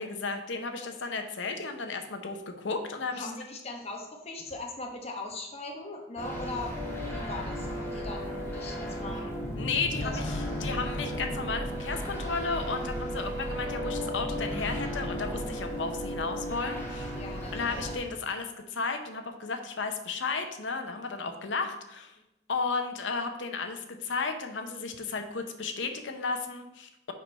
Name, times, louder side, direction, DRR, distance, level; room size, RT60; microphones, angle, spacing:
voice 1, 0.0-3.3 9.5-17.2 17.5-22.2 22.5-27.1, left 4 dB, 70° left, 6 dB, 0.8 m, -34 dB
voice 2, 3.1-6.8 7.0-9.2 10.0-10.3 17.1-17.9, left 2 dB, 35° left, 2 dB, 1.0 m, -40 dB
sound 1, 6.2-18.0, equal, 15° left, 1.2 m, -34 dB
5.0 x 4.4 x 5.2 m, 0.89 s
head